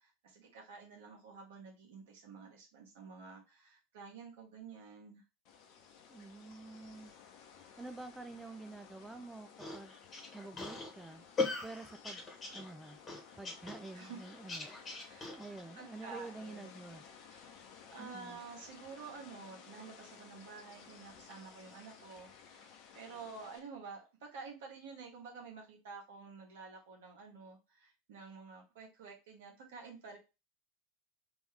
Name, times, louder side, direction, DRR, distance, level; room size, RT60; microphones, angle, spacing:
voice 1, 0.0-5.2 13.9-14.2 14.8-15.3 15.7-16.7 17.2-17.6 17.9-30.2, right 5 dB, 60° right, 0 dB, 1.5 m, -50 dB
sound 1, 5.4-23.6, left 7 dB, 50° left, 0.8 m, -56 dB
voice 2, 6.1-7.1 7.8-10.0 10.3-11.2 11.6-12.2 12.5-13.0 13.4-14.7 15.1-17.0 18.0-18.4, right 3 dB, 10° right, 9 dB, 0.3 m, -48 dB
sound 2, 9.6-15.6, left 3 dB, 25° left, 1.5 m, -40 dB
3.4 x 3.1 x 3.3 m, 0.27 s
figure-of-eight pair, 80°, 0 cm